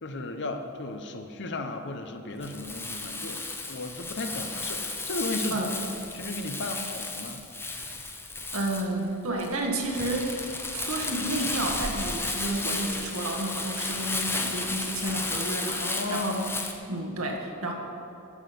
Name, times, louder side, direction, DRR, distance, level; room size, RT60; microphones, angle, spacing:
voice 1, 0.0-7.4 15.8-16.5, left 2 dB, 55° left, 6 dB, 0.9 m, -35 dB
Crumpling crinkling, 2.4-16.7, left 3 dB, 10° left, 0.8 m, -33 dB
voice 2, 8.5-10.4 10.7-15.8 16.1-16.4 16.9-17.7, right 1 dB, 75° right, 1 dB, 1.7 m, -31 dB
12.0 x 6.1 x 8.5 m, 2.7 s
head